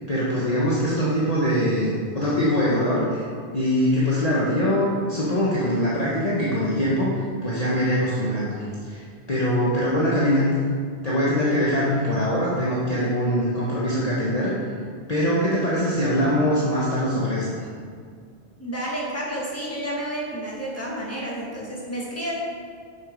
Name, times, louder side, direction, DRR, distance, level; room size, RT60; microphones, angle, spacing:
voice 1, 0.1-3.2 3.5-7.1 7.4-9.0 9.3-10.5 11.0-14.5 15.1-17.6, equal, 35° left, -7 dB, 1.3 m, -23 dB
voice 2, 18.6-22.3, right 1 dB, 15° left, -5 dB, 2.0 m, -30 dB
7.4 x 6.5 x 5.3 m, 2.1 s
omnidirectional pair, 1.1 m